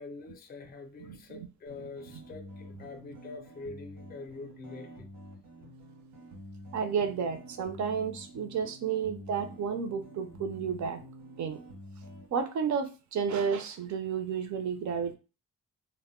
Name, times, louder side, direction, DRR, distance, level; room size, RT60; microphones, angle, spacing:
voice 1, 0.0-5.1, left 3 dB, 30° left, 6 dB, 0.4 m, -45 dB
voice 2, 1.0-1.5 2.1-2.2 6.7-11.0 11.4-11.6 12.3-15.2, right 6 dB, 60° right, 9 dB, 0.5 m, -32 dB
sound 1, 1.7-12.3, equal, 90° right, 1.1 m, -48 dB
2.1 x 2.0 x 3.5 m, 0.33 s
cardioid pair, 130°, 33 cm